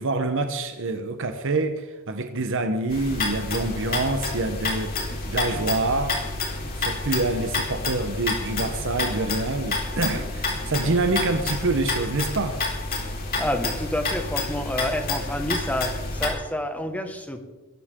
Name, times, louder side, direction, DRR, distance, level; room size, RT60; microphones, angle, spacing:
voice 1, 0.0-6.2 6.8-12.6, right 2 dB, 60° right, 1.1 m, -26 dB
sound 1, 2.9-16.3, left 3 dB, 40° left, 4.3 m, -29 dB
voice 2, 13.4-17.4, left 1 dB, 5° left, 1.7 m, -28 dB
21.5 x 14.5 x 3.8 m
head